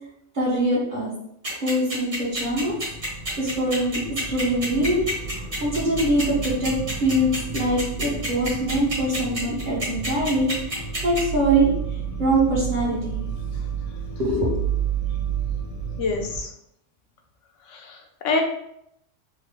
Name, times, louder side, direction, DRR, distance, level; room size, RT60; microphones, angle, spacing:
voice 1, 0.3-1.1 1.6-2.8 3.4-4.0 4.3-11.7 12.2-13.2 14.2-14.6, right 1 dB, 45° right, -4 dB, 1.0 m, -23 dB
sound 1, 1.4-11.2, right 1 dB, 90° right, 1.9 m, -29 dB
sound 2, 2.4-16.4, right 6 dB, 45° left, 0.5 m, -31 dB
voice 2, 16.0-16.5 17.7-18.4, left 3 dB, 80° left, 3 dB, 0.9 m, -26 dB
3.7 x 2.0 x 3.3 m, 0.76 s
omnidirectional pair, 1.3 m